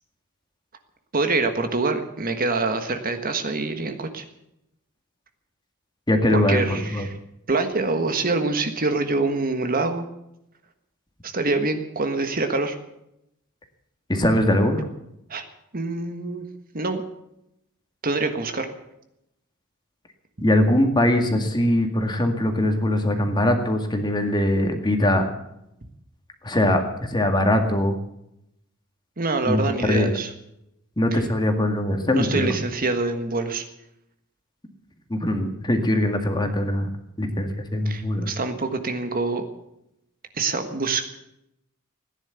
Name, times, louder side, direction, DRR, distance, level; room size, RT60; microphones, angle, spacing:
voice 1, 1.1-4.2 6.3-7.2 7.5-10.0 11.2-12.8 15.3-15.4 15.7-16.5 16.7-17.0 18.0-18.7 25.8-25.9 29.2-30.3 31.1-31.2 32.1-33.6 37.8-39.4 40.3-41.1, right 3 dB, 45° right, 7 dB, 1.5 m, -25 dB
voice 2, 6.1-6.6 6.9-7.1 14.1-14.8 20.4-25.2 26.4-28.0 29.4-30.1 31.0-32.5 35.1-36.9 37.2-38.3, left 1 dB, 20° left, 5 dB, 2.1 m, -21 dB
16.5 x 10.5 x 8.2 m, 0.82 s
head